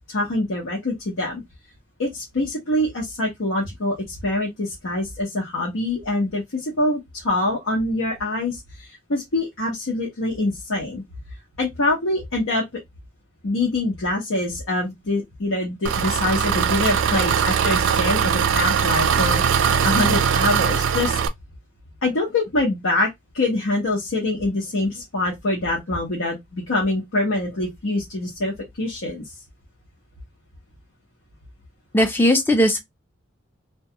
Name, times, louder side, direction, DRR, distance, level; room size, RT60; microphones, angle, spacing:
voice 1, 0.1-1.4 2.0-4.0 4.2-11.0 11.6-12.6 13.4-21.2 22.0-29.2, left 2 dB, 80° left, 0.7 m, -25 dB
Engine, 15.8-21.3, right 7 dB, 70° right, 0.3 m, -20 dB
voice 2, 31.9-32.8, equal, 10° left, 0.4 m, -18 dB
2.2 x 2.1 x 2.7 m
head